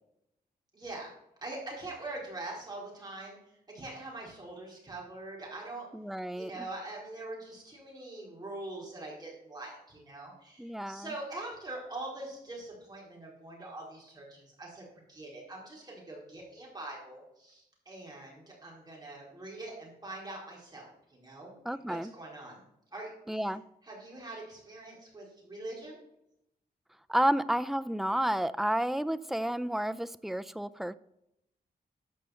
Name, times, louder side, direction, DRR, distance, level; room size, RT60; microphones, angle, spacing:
voice 1, 0.7-1.1 1.4-3.4 3.7-5.9 6.3-22.6 22.9-23.6 23.8-26.0, right 2 dB, 25° right, -4 dB, 4.2 m, -43 dB
voice 2, 5.9-6.5 10.6-11.0 21.7-22.1 23.3-23.6 27.1-30.9, right 1 dB, ahead, 12 dB, 0.4 m, -31 dB
12.0 x 5.6 x 7.7 m, 0.81 s
wide cardioid pair, 130°, 16 cm